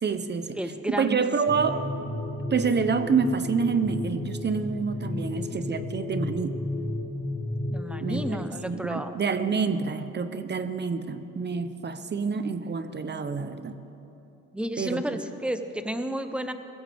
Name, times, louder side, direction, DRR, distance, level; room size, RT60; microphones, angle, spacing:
voice 1, 0.0-0.6 1.0-1.9 2.5-6.6 8.0-13.8 14.8-15.0, right 5 dB, 35° right, 10 dB, 0.8 m, -27 dB
voice 2, 0.6-1.2 7.7-9.1 14.5-16.5, right 1 dB, 5° right, 8 dB, 0.9 m, -31 dB
sound 1, 1.5-8.3, left 1 dB, 20° left, 3.9 m, -33 dB
20.0 x 15.5 x 3.5 m, 2.9 s
cardioid pair, 90°, 30 cm